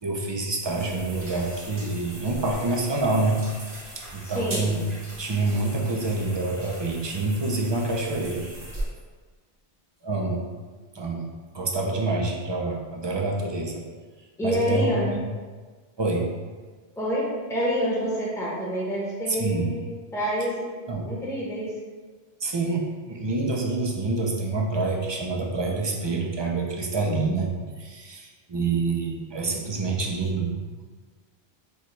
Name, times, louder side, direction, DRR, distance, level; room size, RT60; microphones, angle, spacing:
voice 1, 0.0-3.4 4.0-4.8 5.2-8.4 10.0-10.4 10.9-11.3 11.5-13.8 14.4-14.9 16.0-16.3 19.3-19.7 20.9-21.1 22.4-27.5 27.8-30.5, right 3 dB, 35° right, 0 dB, 0.5 m, -27 dB
sound 1, 0.6-8.9, right 1 dB, 55° right, 1.3 m, -39 dB
voice 2, 4.2-4.8 14.4-15.2 17.0-20.6 21.0-21.7, equal, 5° left, -6 dB, 0.9 m, -27 dB
6.3 x 2.3 x 3.2 m, 1.4 s
omnidirectional pair, 1.0 m